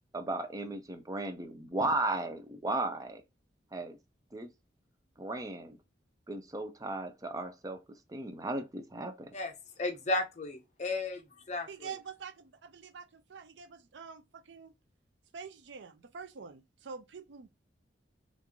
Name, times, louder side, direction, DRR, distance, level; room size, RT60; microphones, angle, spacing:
voice 1, 0.1-3.2 3.7-4.0 4.3-4.5 5.2-5.8 6.3-7.8 8.1-9.3, right 2 dB, 20° right, 0.5 m, -35 dB
voice 2, 9.3-11.9, left 2 dB, 40° left, 0.7 m, -35 dB
voice 3, 11.7-14.7 15.3-17.5, right 6 dB, 85° right, 0.5 m, -46 dB
3.0 x 2.5 x 3.6 m
head